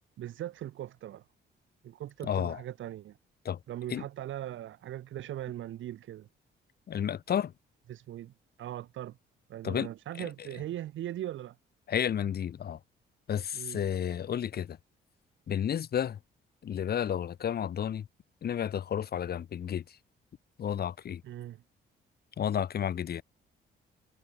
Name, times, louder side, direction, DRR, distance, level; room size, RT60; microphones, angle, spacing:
voice 1, 0.2-1.2 1.8-3.2 3.7-6.3 7.9-8.3 8.6-9.2 9.5-11.6 13.5-13.8 21.2-21.6, right 12 dB, 75° right, 3.1 m, -40 dB
voice 2, 2.2-2.6 3.4-3.6 3.9-4.0 6.9-7.5 9.6-9.9 10.2-10.3 11.9-12.8 13.3-14.8 15.5-16.2 16.6-18.1 18.4-19.8 20.6-21.2 22.4-23.2, left 9 dB, 50° left, 1.2 m, -31 dB
cardioid pair, 90°, 20 cm